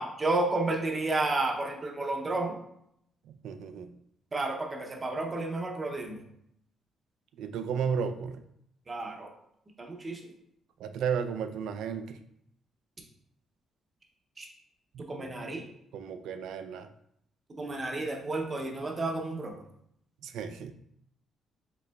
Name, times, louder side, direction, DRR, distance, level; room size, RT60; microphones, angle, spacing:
voice 1, 0.0-2.6 4.3-6.2 8.9-9.3 9.8-10.2 14.4-14.5 15.0-15.6 17.5-19.5, right 2 dB, 20° right, 1 dB, 0.6 m, -31 dB
voice 2, 3.3-3.9 7.4-8.4 10.8-12.2 14.9-15.3 15.9-16.9 20.2-20.7, right 7 dB, 85° right, 9 dB, 0.3 m, -34 dB
5.0 x 3.8 x 2.3 m, 0.74 s
cardioid pair, 170°, 0 cm